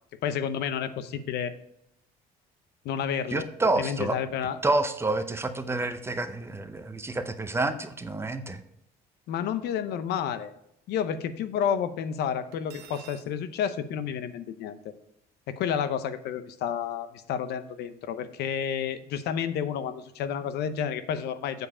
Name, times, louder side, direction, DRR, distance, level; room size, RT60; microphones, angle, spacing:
voice 1, 0.2-1.5 2.8-3.5 3.8-4.6 9.3-10.5 10.9-14.9 15.5-21.7, left 8 dB, 80° left, 11 dB, 0.7 m, -30 dB
voice 2, 3.3-4.2 4.6-8.6, right 2 dB, 15° right, 9 dB, 0.7 m, -28 dB
Cutlery silverware, 12.5-13.3, right 9 dB, 75° right, 0.9 m, -49 dB
7.8 x 4.9 x 4.9 m, 0.75 s
cardioid pair, 110°, 17 cm